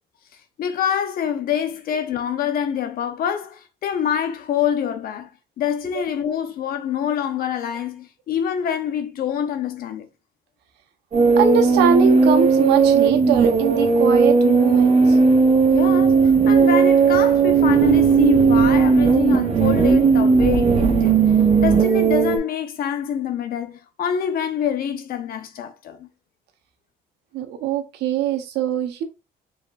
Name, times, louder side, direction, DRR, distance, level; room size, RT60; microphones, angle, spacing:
voice 1, 0.6-5.3 5.6-10.0 15.7-21.2 21.6-26.1, left 8 dB, 60° left, 0.7 m, -26 dB
sound 1, 11.1-22.4, right 5 dB, 35° right, 1.0 m, -16 dB
voice 2, 11.4-15.2 27.3-29.0, right 8 dB, 80° right, 1.0 m, -22 dB
4.9 x 3.5 x 2.5 m
cardioid pair, 110°, 17 cm